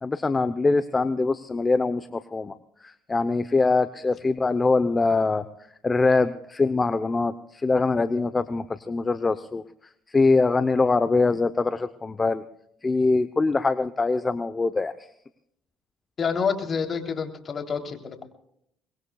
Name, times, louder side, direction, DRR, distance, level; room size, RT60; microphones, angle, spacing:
voice 1, 0.0-2.5 2.8-5.5 5.8-9.6 10.1-12.4 12.8-15.1, left 3 dB, 25° left, 11 dB, 0.8 m, -23 dB
voice 2, 16.2-18.2, left 6 dB, 45° left, 4 dB, 3.3 m, -28 dB
23.5 x 21.5 x 2.4 m, 0.71 s
supercardioid pair, 90°, 0 cm